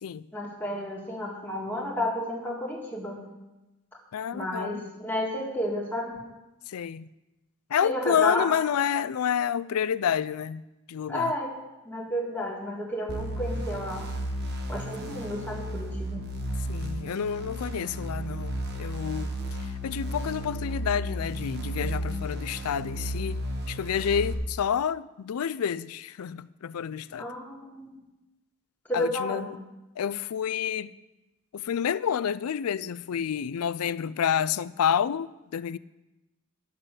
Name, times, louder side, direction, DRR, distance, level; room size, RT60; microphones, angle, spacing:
voice 1, 0.3-3.2 4.3-6.2 7.8-8.5 11.1-11.6 11.8-14.1 14.7-16.3 27.2-28.0 28.9-29.5, left 1 dB, 10° left, 1.9 m, -32 dB
voice 2, 4.1-4.9 6.7-7.1 7.7-10.6 10.9-11.3 16.7-19.3 19.8-27.2 28.9-29.6 30.0-30.9 31.5-35.8, left 8 dB, 80° left, 0.4 m, -29 dB
sound 1, 13.1-24.3, equal, 50° right, 1.2 m, -33 dB
11.0 x 6.5 x 7.6 m
head